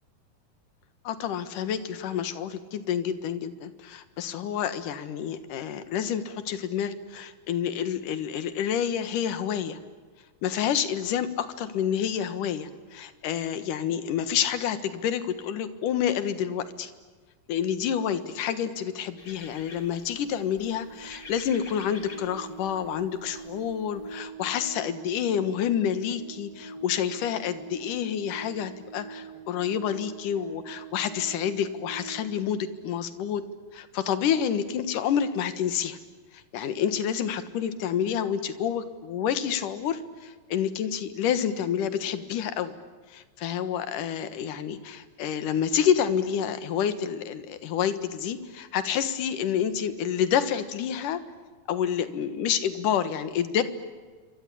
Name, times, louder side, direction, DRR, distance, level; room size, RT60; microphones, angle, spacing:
voice 1, 1.0-9.8 10.4-16.9 17.5-33.4 33.7-36.0 36.3-42.7 43.1-51.2 51.7-53.6, left 8 dB, 60° left, 11 dB, 2.7 m, -28 dB
sound 1, 18.7-18.8 19.1-32.3, right 4 dB, 45° right, 1.3 m, -44 dB
sound 2, 19.2-24.2, left 3 dB, 30° left, 3.9 m, -49 dB
27.5 x 25.0 x 8.6 m, 1.4 s
omnidirectional pair, 4.6 m